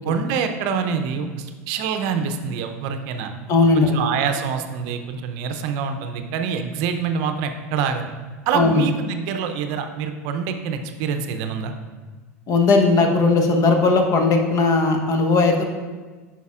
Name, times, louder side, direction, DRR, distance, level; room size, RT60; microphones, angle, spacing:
voice 1, 0.0-3.3 3.7-8.1 8.5-11.7, right 6 dB, 60° right, 6 dB, 0.6 m, -26 dB
voice 2, 3.5-4.0 8.5-8.8 12.5-15.6, left 3 dB, 45° left, 3 dB, 1.0 m, -17 dB
9.3 x 5.8 x 2.4 m, 1.3 s
hypercardioid pair, 90°, 8 cm